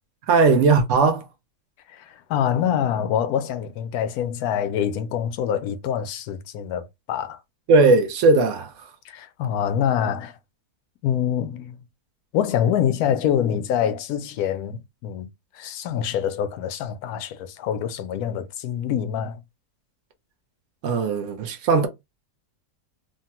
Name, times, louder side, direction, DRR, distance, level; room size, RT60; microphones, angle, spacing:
voice 1, 0.3-1.2 7.7-8.7 20.8-21.9, right 4 dB, 60° right, 0.9 m, -18 dB
voice 2, 1.9-7.4 9.0-10.4 11.0-11.8 12.3-15.3 15.5-19.4, left 9 dB, 75° left, 1.0 m, -25 dB
3.2 x 2.1 x 2.8 m
omnidirectional pair, 1.7 m